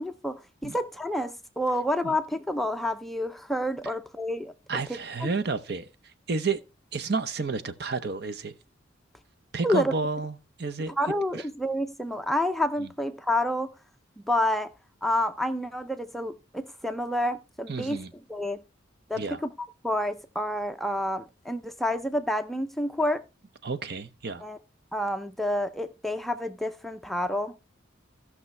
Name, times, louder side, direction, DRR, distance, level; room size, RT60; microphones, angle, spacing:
voice 1, 0.0-4.5 4.9-5.3 9.6-9.9 11.0-13.7 14.3-14.7 15.0-18.0 18.3-18.6 19.1-19.5 19.8-23.2 24.4-24.6 24.9-27.5, left 1 dB, ahead, 0.5 m, -29 dB
voice 2, 4.7-6.6 6.9-8.5 9.5-10.9 11.3-11.4 12.8-12.9 17.7-18.1 19.2-19.4 23.6-24.4, right 4 dB, 55° right, 0.8 m, -31 dB
16.5 x 6.0 x 3.2 m
head